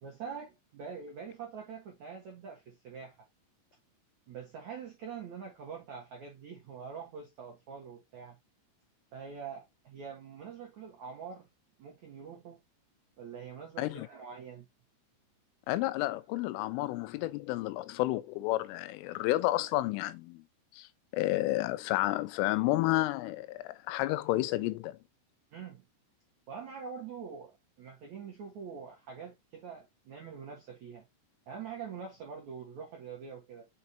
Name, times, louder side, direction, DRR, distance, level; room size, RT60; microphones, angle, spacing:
voice 1, 0.0-3.3 4.3-8.4 9.1-11.5 11.8-12.6 13.2-14.7 16.3-16.5 25.5-25.9 26.5-31.1 31.5-33.7, right 6 dB, 75° right, 1.6 m, -44 dB
voice 2, 15.7-20.4 20.7-20.9 21.1-25.0, left 17 dB, 85° left, 3.2 m, -31 dB
6.8 x 5.4 x 2.8 m
omnidirectional pair, 5.7 m